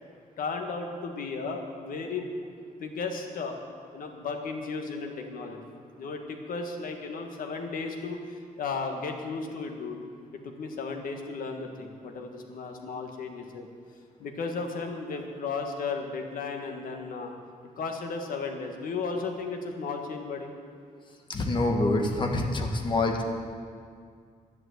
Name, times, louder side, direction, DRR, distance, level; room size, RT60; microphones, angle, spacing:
voice 1, 0.4-2.4 2.8-3.6 3.9-5.6 6.0-10.0 10.3-13.7 14.2-17.4 17.8-20.5, left 4 dB, 75° left, 4 dB, 1.6 m, -34 dB
voice 2, 21.3-23.2, left 2 dB, 35° left, 3 dB, 1.4 m, -26 dB
11.0 x 11.0 x 7.9 m, 2.1 s
wide cardioid pair, 170°, 15 cm